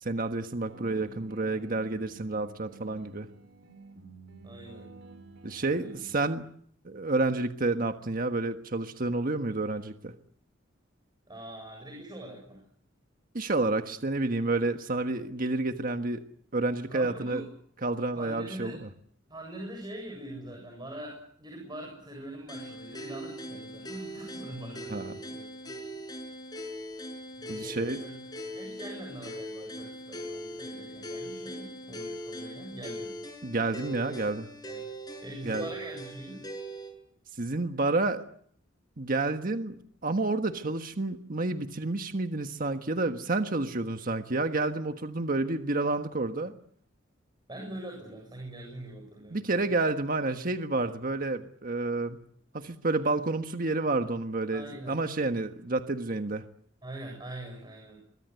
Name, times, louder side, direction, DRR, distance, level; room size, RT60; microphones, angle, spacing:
voice 1, 0.0-3.3 5.4-6.4 6.8-10.1 13.3-16.2 16.5-17.5 17.8-18.9 24.9-25.1 27.5-28.0 33.4-34.5 35.4-35.6 37.4-38.2 39.0-46.5 49.3-52.2 52.5-56.4, right 2 dB, 50° right, 7 dB, 1.4 m, -29 dB
sound 1, 0.7-6.1, right 3 dB, 70° right, 6.6 m, -50 dB
voice 2, 4.4-5.0 5.7-6.0 11.3-12.6 16.9-17.5 18.1-18.8 19.3-25.7 27.4-28.2 28.4-33.2 34.6-34.9 35.2-36.4 47.5-49.6 50.8-50.9 54.5-55.0 56.8-58.0, right 1 dB, 25° right, 1 dB, 7.6 m, -43 dB
sound 2, 22.5-36.9, equal, 20° left, 6.9 m, -41 dB
25.0 x 23.5 x 8.1 m, 0.63 s
head